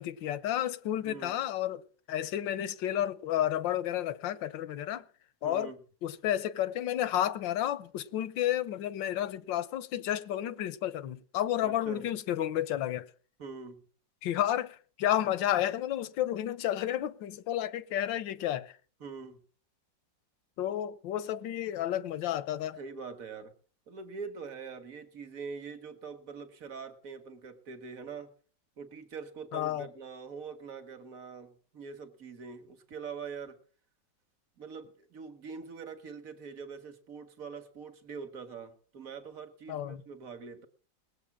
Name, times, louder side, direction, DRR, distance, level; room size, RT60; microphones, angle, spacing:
voice 1, 0.0-1.8 2.1-5.0 5.4-5.7 6.0-13.1 14.2-18.8 20.6-22.8 29.5-29.9 39.7-40.0, left 12 dB, 80° left, 1.5 m, -31 dB
voice 2, 1.0-1.4 5.4-5.8 11.6-12.1 13.4-13.8 19.0-19.4 22.7-23.5 23.9-28.3 28.8-33.6 34.6-40.7, right 5 dB, 50° right, 2.0 m, -44 dB
19.5 x 7.8 x 7.3 m
omnidirectional pair, 2.0 m